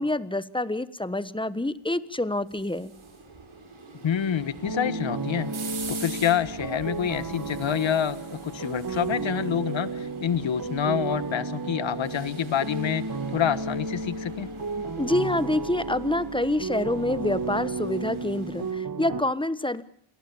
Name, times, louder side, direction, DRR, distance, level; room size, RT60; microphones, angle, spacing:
voice 1, 0.0-2.9 15.0-19.8, left 1 dB, 10° left, 14 dB, 1.3 m, -27 dB
sound 1, 2.1-18.7, right 3 dB, 70° right, 6.8 m, -44 dB
voice 2, 4.0-5.5 5.9-13.1 13.3-14.5, left 9 dB, 65° left, 15 dB, 1.5 m, -27 dB
sound 2, 4.6-19.2, right 3 dB, 40° right, 1.8 m, -33 dB
27.5 x 19.0 x 7.2 m, 0.65 s
cardioid pair, 65°, 49 cm